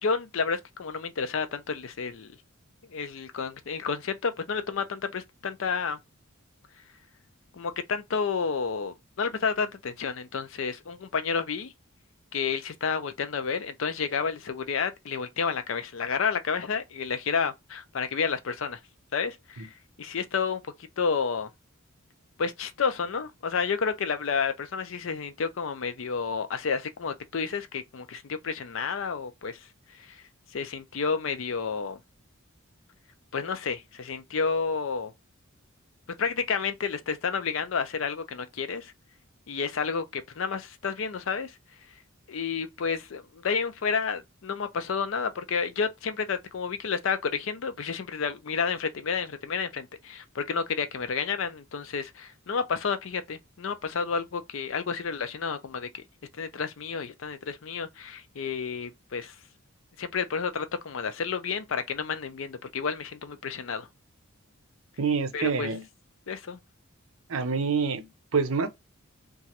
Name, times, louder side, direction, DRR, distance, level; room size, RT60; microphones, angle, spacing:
voice 1, 0.0-2.3 2.9-6.0 7.5-11.7 12.3-18.8 19.1-19.7 20.0-20.6 21.0-21.5 22.4-29.6 30.0-30.2 30.5-32.0 33.3-35.1 36.2-38.9 39.5-41.5 42.3-56.0 56.4-59.4 60.0-63.9 65.3-65.7 66.3-66.6, left 5 dB, 65° left, 0.5 m, -30 dB
voice 2, 65.0-65.8 67.3-68.7, right 5 dB, 75° right, 0.6 m, -27 dB
3.0 x 2.4 x 2.8 m
head